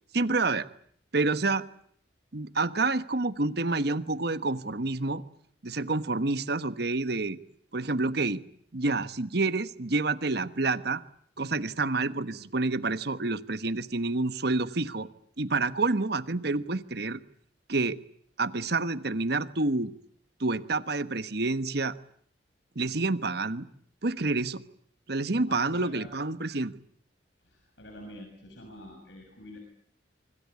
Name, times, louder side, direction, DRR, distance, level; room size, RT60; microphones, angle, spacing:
voice 1, 0.1-0.7 1.1-1.6 2.3-5.2 5.6-7.4 7.7-8.4 8.7-11.0 11.4-15.1 15.4-17.2 17.7-18.0 18.4-19.9 20.4-21.9 22.7-23.7 24.0-24.6 25.1-26.7, right 3 dB, 60° right, 14 dB, 1.3 m, -28 dB
voice 2, 25.5-26.1 27.4-29.6, left 1 dB, 70° left, 3 dB, 7.2 m, -46 dB
25.5 x 24.5 x 8.3 m, 0.64 s
head